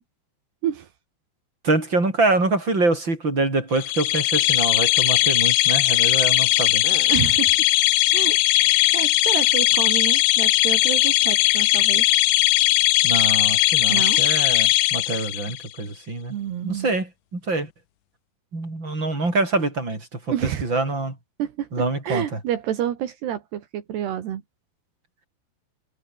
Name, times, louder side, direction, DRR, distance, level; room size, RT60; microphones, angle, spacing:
voice 1, 1.6-6.8 13.0-16.4 16.6-17.7 18.5-21.2 21.7-22.4, right 2 dB, 25° right, 8.3 m, -25 dB
sound 1, 3.8-15.6, left 18 dB, 80° left, 2.8 m, -19 dB
voice 2, 6.8-7.6 8.1-12.1 13.9-14.2 16.3-16.9 20.3-20.7 21.4-24.4, right 11 dB, 75° right, 4.1 m, -29 dB
omnidirectional pair, 4.8 m